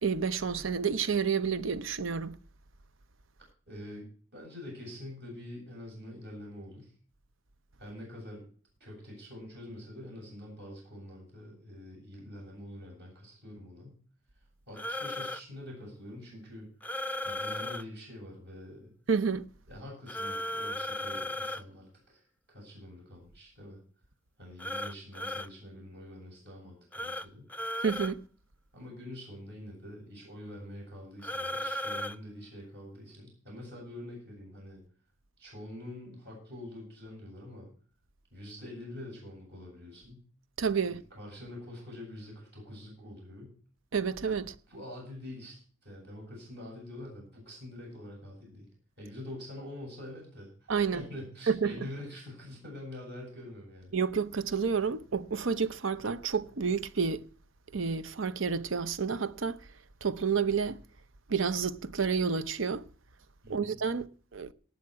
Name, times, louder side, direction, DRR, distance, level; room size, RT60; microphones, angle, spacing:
voice 1, 0.0-2.4 19.1-19.5 27.8-28.2 40.6-41.0 43.9-44.5 50.7-51.0 51.5-51.7 53.9-57.3 57.7-59.6 60.0-60.8 61.3-62.9 63.5-64.1 64.3-64.5, right 5 dB, 70° right, 0.7 m, -29 dB
voice 2, 3.7-6.9 7.8-8.4 8.8-14.0 14.7-16.7 17.2-18.9 19.7-23.8 24.4-27.5 28.7-34.8 35.4-37.7 38.3-40.2 40.9-43.5 44.7-48.6 49.0-53.9 63.4-63.8, left 1 dB, 55° right, 7.8 m, -45 dB
sound 1, 14.8-15.4 16.8-17.8 20.1-21.6 24.6-25.5 26.9-27.3 27.5-28.1 31.2-32.2, left 1 dB, 10° left, 0.5 m, -35 dB
18.5 x 7.4 x 4.8 m
head